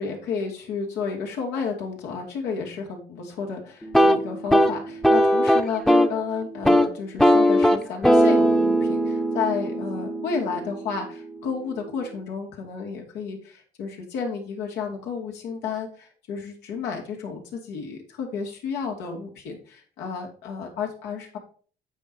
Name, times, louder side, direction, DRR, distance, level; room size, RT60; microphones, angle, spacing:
voice 1, 0.0-21.4, left 5 dB, 90° left, 0 dB, 2.5 m, -32 dB
sound 1, 3.8-6.2 6.5-6.9 7.2-11.1, equal, 5° left, 0.8 m, -20 dB
8.8 x 4.5 x 5.3 m, 0.43 s
cardioid pair, 110°, 17 cm